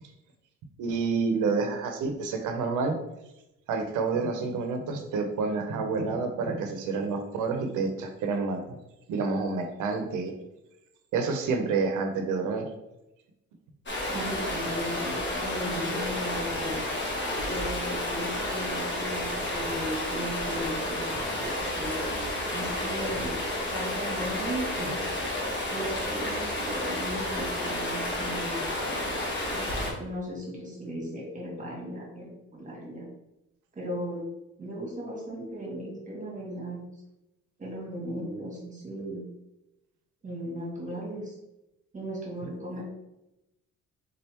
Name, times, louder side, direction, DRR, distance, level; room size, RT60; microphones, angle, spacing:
voice 1, 0.8-2.9 3.7-8.8 9.1-10.3 11.1-12.7, right 4 dB, 85° right, 5 dB, 0.7 m, -28 dB
Stream, 13.9-29.9, left 1 dB, 40° left, 1.2 m, -31 dB
voice 2, 14.1-16.8 17.5-21.9 22.5-23.3 23.6-24.9 25.7-29.1 29.5-29.7 30.0-33.1 33.7-34.2 34.6-36.9 37.6-39.2 40.2-41.3 41.9-42.8, equal, 25° right, -2 dB, 1.4 m, -37 dB
3.8 x 3.4 x 2.9 m, 0.92 s
cardioid pair, 90°, 30 cm